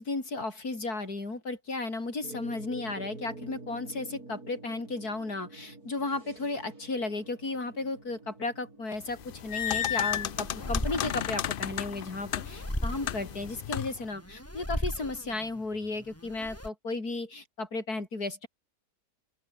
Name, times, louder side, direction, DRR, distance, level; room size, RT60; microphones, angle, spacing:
voice 1, 0.0-18.5, left 3 dB, 90° left, 5.3 m, -34 dB
sound 1, 2.2-15.6, right 2 dB, 80° right, 5.4 m, -50 dB
sound 2, 9.1-14.1, left 10 dB, 65° left, 0.5 m, -33 dB
sound 3, 9.7-16.7, equal, 10° left, 4.7 m, -38 dB
open air
omnidirectional pair, 1.6 m